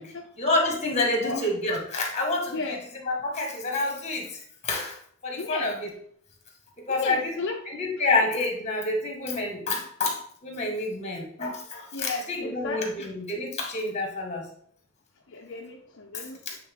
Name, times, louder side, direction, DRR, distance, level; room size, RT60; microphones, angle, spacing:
voice 1, 0.0-5.0 5.2-5.9 6.9-7.4 7.7-14.5 16.5-16.6, left 2 dB, 35° left, 1 dB, 1.8 m, -28 dB
voice 2, 5.4-5.7 6.9-7.6 8.0-8.1 11.9-13.2 15.3-16.4, left 3 dB, 60° left, 1 dB, 0.7 m, -34 dB
8.4 x 3.9 x 3.8 m, 0.63 s
head